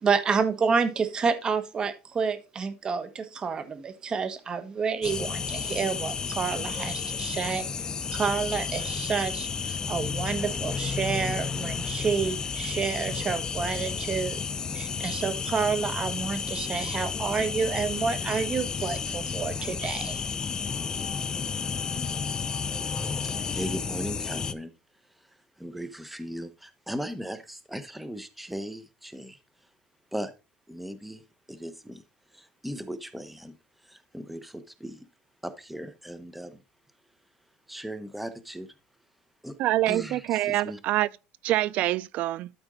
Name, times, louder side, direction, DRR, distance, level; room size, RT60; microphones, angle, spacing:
voice 1, 0.0-14.4 14.7-20.2, right 5 dB, 30° right, 1.2 m, -29 dB
sound 1, 5.0-24.5, left 6 dB, 25° left, 0.5 m, -32 dB
voice 2, 23.2-24.7 25.2-29.4 30.1-30.3 30.7-31.2 31.5-32.0 32.3-33.5 33.8-35.1 35.4-36.6 37.7-38.7 39.4-39.6 39.9-40.8, equal, 5° right, 1.0 m, -38 dB
voice 3, 39.6-41.1 41.4-42.5, right 15 dB, 60° right, 0.3 m, -25 dB
12.5 x 4.4 x 3.8 m
cardioid pair, 125°, 3 cm